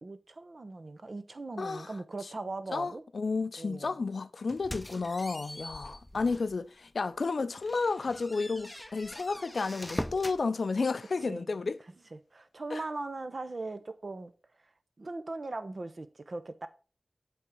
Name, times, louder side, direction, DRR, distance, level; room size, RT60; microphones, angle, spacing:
voice 1, 0.0-3.0 3.6-3.9 11.3-11.5 12.1-14.3 15.0-16.7, right 2 dB, 60° right, 0.7 m, -39 dB
voice 2, 1.6-1.9 2.7-11.8 12.7-12.8, left 4 dB, 85° left, 0.4 m, -32 dB
sound 1, 4.5-6.6 7.0-7.2 7.6-10.4, left 1 dB, 10° left, 0.5 m, -42 dB
8.4 x 3.6 x 5.1 m
wide cardioid pair, 55°, 0 cm